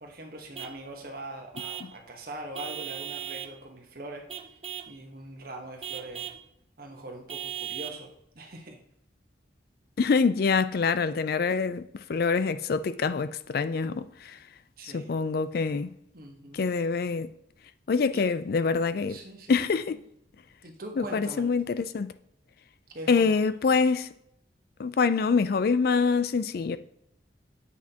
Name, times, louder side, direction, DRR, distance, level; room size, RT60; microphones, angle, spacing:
voice 1, 0.0-4.3 4.9-6.3 6.8-8.8 14.8-15.2 16.1-16.7 18.1-18.3 19.1-19.5 20.6-21.5 22.9-23.3, right 1 dB, 55° right, 1.2 m, -42 dB
Vehicle horn car horn honking / Truck, 0.5-0.8 1.5-2.0 2.5-3.6 4.3-5.0 5.8-6.4 7.3-8.0, right 10 dB, 30° right, 0.4 m, -37 dB
voice 2, 10.0-14.4 14.8-15.9 16.5-17.3 17.9-19.2 19.5-20.0 21.0-22.1 23.1-24.1 24.8-26.8, left 5 dB, 55° left, 0.4 m, -25 dB
8.3 x 5.9 x 2.9 m
head